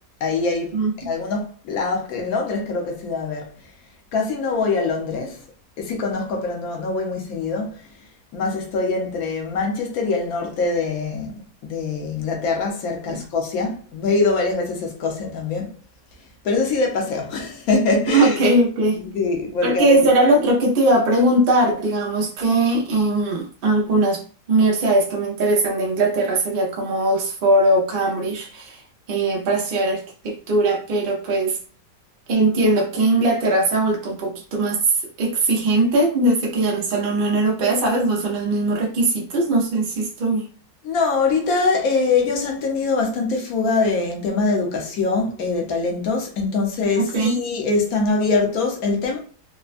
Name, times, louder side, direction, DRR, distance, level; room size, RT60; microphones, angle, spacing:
voice 1, 0.2-3.5 4.1-5.4 5.8-7.8 8.3-11.3 11.7-15.7 16.4-18.4 19.0-20.0 40.8-49.2, left 3 dB, 65° left, 1.1 m, -23 dB
voice 2, 18.1-19.0 19.6-24.2 24.5-28.8 29.1-31.6 32.3-34.8 35.2-40.4 47.0-47.4, right 2 dB, 80° right, 0.5 m, -20 dB
3.3 x 2.1 x 2.4 m
omnidirectional pair, 1.8 m